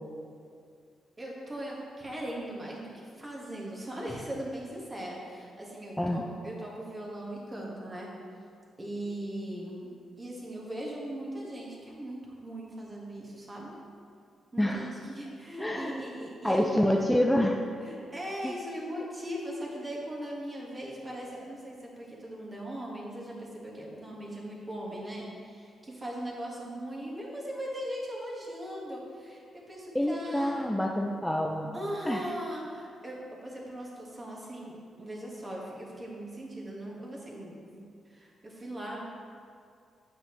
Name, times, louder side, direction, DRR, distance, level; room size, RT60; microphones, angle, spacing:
voice 1, 1.2-8.1 8.8-9.9 10.2-13.7 14.5-16.9 17.8-30.7 31.7-39.0, right 1 dB, 25° right, -3 dB, 1.6 m, -39 dB
voice 2, 15.6-16.0 16.4-17.6 18.4-18.5 29.9-31.8 32.1-32.2, left 1 dB, 5° left, 0 dB, 0.5 m, -27 dB
8.0 x 5.3 x 3.2 m, 2.3 s
cardioid pair, 65°, 0 cm